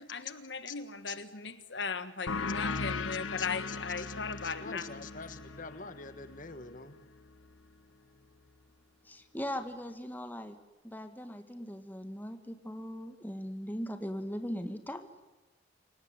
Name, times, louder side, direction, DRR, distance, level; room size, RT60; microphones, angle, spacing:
voice 1, 0.0-4.9, left 5 dB, 60° left, 12 dB, 1.5 m, -38 dB
sound 1, 2.3-7.5, left 4 dB, 85° left, 1.3 m, -38 dB
voice 2, 3.4-4.1 4.4-7.0, left 4 dB, 40° left, 11 dB, 1.5 m, -45 dB
voice 3, 9.0-10.6 10.8-15.1, equal, 10° left, 7 dB, 1.7 m, -39 dB
28.0 x 18.0 x 9.8 m, 1.2 s
head